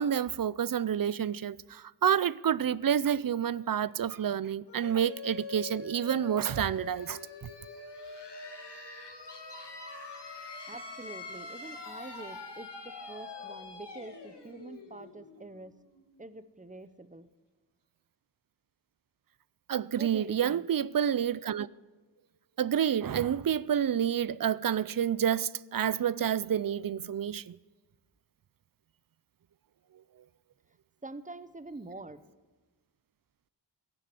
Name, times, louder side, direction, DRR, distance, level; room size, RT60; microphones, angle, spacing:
voice 1, 0.0-7.2 19.7-21.7 22.6-27.6, right 9 dB, 50° right, 0.5 m, -29 dB
sound 1, 4.7-16.2, left 3 dB, 70° left, 2.3 m, -44 dB
voice 2, 10.7-15.8 16.2-17.3 19.9-20.7 31.0-32.2, right 2 dB, 20° right, 0.8 m, -46 dB
15.5 x 7.5 x 8.4 m
wide cardioid pair, 70°, 43 cm